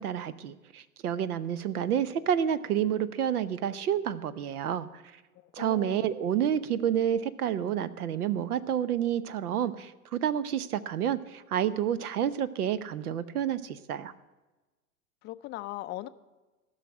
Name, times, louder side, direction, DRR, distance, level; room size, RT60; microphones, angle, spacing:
voice 1, 0.0-5.0 5.5-14.1, right 9 dB, 80° right, 15 dB, 0.8 m, -29 dB
voice 2, 5.4-6.1 15.2-16.1, left 16 dB, 25° left, 12 dB, 0.4 m, -39 dB
14.0 x 6.4 x 8.6 m, 1.2 s
hypercardioid pair, 95°, 45 cm